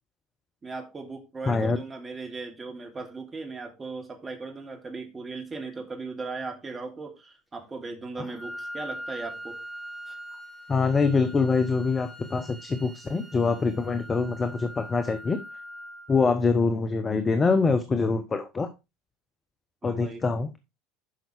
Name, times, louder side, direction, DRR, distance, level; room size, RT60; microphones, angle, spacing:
voice 1, 0.6-9.6 10.1-10.2 19.8-20.2, right 3 dB, 20° right, 3.1 m, -38 dB
voice 2, 1.5-1.8 10.7-15.4 16.1-18.7 19.8-20.5, left 4 dB, 25° left, 1.0 m, -24 dB
Wind instrument woodwind instrument, 8.3-16.3, equal, 5° right, 3.0 m, -42 dB
11.5 x 5.8 x 3.5 m
figure-of-eight pair, 70°, 0 cm